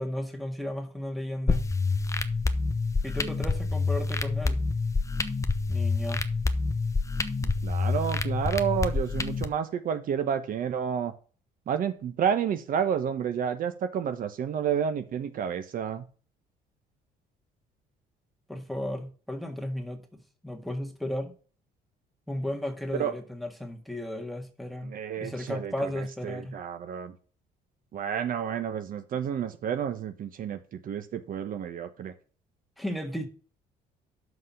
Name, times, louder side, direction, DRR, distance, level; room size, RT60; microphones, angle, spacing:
voice 1, 0.0-1.7 3.0-4.6 5.7-6.2 18.5-21.3 22.3-26.6 32.8-33.3, left 1 dB, ahead, 4 dB, 1.8 m, -35 dB
sound 1, 1.5-9.5, left 3 dB, 20° left, 0.9 m, -27 dB
voice 2, 7.4-11.1 11.7-16.0 23.0-23.1 24.8-27.1 27.9-30.6 30.8-32.1, right 8 dB, 55° right, 9 dB, 1.0 m, -30 dB
5.9 x 5.7 x 7.0 m, 0.37 s
cardioid pair, 110°, 17 cm